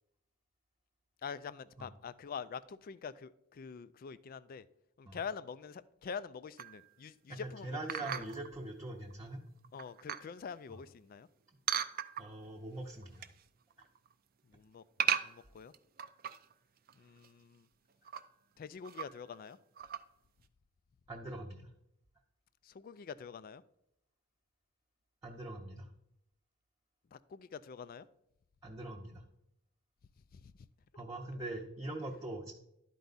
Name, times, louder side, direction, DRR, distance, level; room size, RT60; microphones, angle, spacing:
voice 1, 1.2-4.7 5.0-8.3 9.7-11.3 14.5-14.8 15.2-15.7 16.9-17.7 18.6-19.6 22.6-23.6 27.1-28.1 30.3-30.5 30.9-31.0, left 6 dB, 45° left, 0.3 m, -45 dB
sound 1, 6.6-6.9 7.9-8.5 9.1-9.2 9.6-10.3 11.7-12.5 12.9-13.4 13.7-14.1 15.0-16.5 16.9-17.0 17.2-17.3 17.9-18.2 18.8-19.4 19.8-20.0, right 9 dB, 45° right, 0.4 m, -36 dB
voice 2, 7.3-9.4 12.2-13.3 21.1-21.6 25.2-25.9 28.6-29.2 31.0-32.5, right 2 dB, 15° right, 0.7 m, -42 dB
11.5 x 4.6 x 4.0 m
head